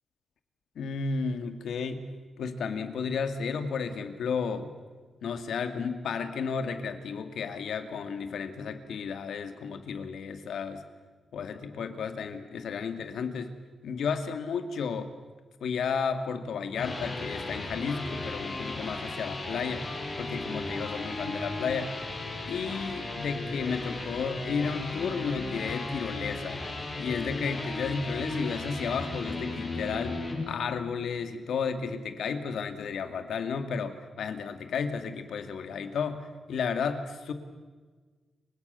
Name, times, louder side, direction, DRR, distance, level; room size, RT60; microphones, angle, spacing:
voice 1, 0.8-2.1 2.4-4.7 5.2-10.8 11.3-13.5 13.8-15.1 15.6-19.9 20.2-21.9 22.5-26.6 27.0-37.3, left 5 dB, 80° left, 8 dB, 2.4 m, -33 dB
sound 1, 16.6-30.4, left 2 dB, 30° left, 7.1 m, -36 dB
29.5 x 25.5 x 7.0 m, 1.4 s
wide cardioid pair, 180°, 0 cm